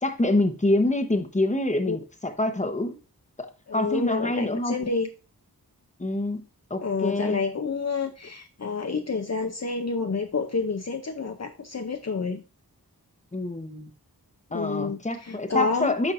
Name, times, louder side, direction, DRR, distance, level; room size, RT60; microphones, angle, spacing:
voice 1, 0.0-3.0 3.4-3.5 3.7-4.9 6.0-6.4 6.7-7.4 13.3-13.9 14.5-16.1, left 2 dB, 20° left, 1.0 m, -26 dB
voice 2, 3.7-5.1 6.8-12.4 14.5-15.9, left 4 dB, 45° left, 0.7 m, -29 dB
10.0 x 5.7 x 2.6 m
wide cardioid pair, 55°, 38 cm